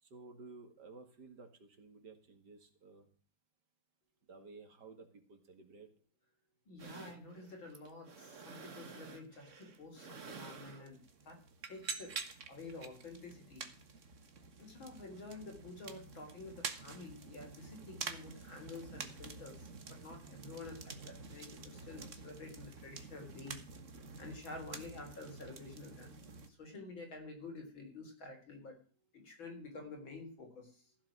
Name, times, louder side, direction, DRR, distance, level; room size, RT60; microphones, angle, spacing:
voice 1, 0.0-3.1 4.3-5.9, right 3 dB, 60° right, 7 dB, 2.6 m, -54 dB
voice 2, 6.7-11.4 11.7-12.2 12.5-13.7 14.6-23.6 24.2-26.2 26.5-28.8 29.1-30.8, left 3 dB, 90° left, 3 dB, 4.6 m, -50 dB
sound 1, 6.8-26.5, right 4 dB, 45° right, 1.6 m, -48 dB
15.5 x 7.4 x 6.2 m, 0.43 s
omnidirectional pair, 2.1 m